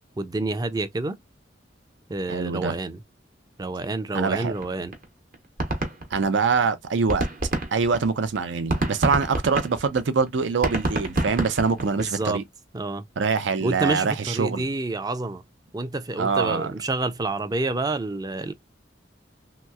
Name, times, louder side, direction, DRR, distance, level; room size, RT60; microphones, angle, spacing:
voice 1, 0.2-1.2 2.1-3.0 3.6-4.9 12.0-12.4 12.7-13.0 13.6-15.4 15.7-18.5, right 2 dB, 20° right, 0.4 m, -28 dB
voice 2, 2.3-2.8 4.1-4.5 6.1-7.3 7.7-12.4 13.2-14.6 16.2-16.7, right 5 dB, 80° right, 0.5 m, -24 dB
sound 1, 4.6-4.7 4.9-5.0 5.3-6.7 6.9-12.2, right 2 dB, 50° right, 0.9 m, -27 dB
3.1 x 2.9 x 2.3 m
head